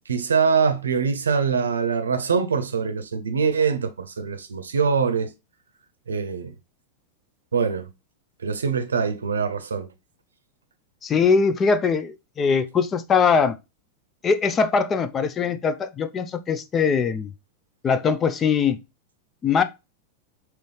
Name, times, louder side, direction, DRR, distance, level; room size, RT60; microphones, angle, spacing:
voice 1, 0.1-5.3 6.1-6.5 7.5-7.9 8.4-9.9, right 6 dB, 70° right, 0.7 m, -23 dB
voice 2, 11.0-13.6 14.2-17.3 17.8-18.8 19.4-19.6, left 5 dB, 25° left, 0.4 m, -21 dB
5.2 x 3.1 x 3.3 m
figure-of-eight pair, 90°, 0 cm